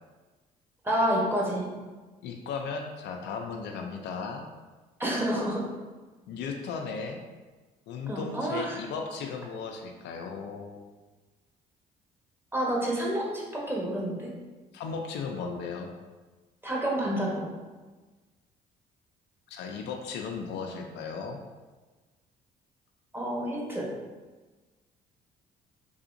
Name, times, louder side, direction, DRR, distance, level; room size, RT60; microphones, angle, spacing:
voice 1, 0.8-1.7 5.0-5.6 8.1-8.8 12.5-14.3 16.6-17.5 23.1-23.9, right 1 dB, 10° right, -4 dB, 1.1 m, -29 dB
voice 2, 2.2-4.5 6.3-7.2 7.9-10.8 14.7-15.9 19.5-21.4, left 5 dB, 70° left, 3 dB, 0.4 m, -36 dB
3.4 x 2.7 x 2.5 m, 1.3 s
supercardioid pair, 65°, 19 cm